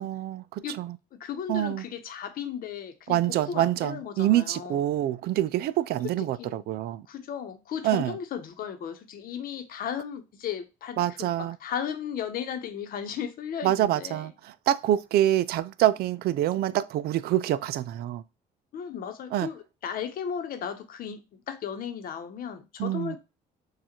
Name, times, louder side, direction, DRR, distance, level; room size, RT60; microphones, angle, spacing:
voice 1, 0.0-1.0 1.5-1.8 3.1-7.0 7.8-8.1 11.0-11.6 13.6-14.3 14.7-18.2 19.3-19.5 22.8-23.2, right 13 dB, 65° right, 0.4 m, -26 dB
voice 2, 1.1-4.8 6.4-6.6 7.1-14.3 18.7-23.2, left 8 dB, 60° left, 0.9 m, -35 dB
6.5 x 2.4 x 2.9 m
cardioid pair, 110°, 17 cm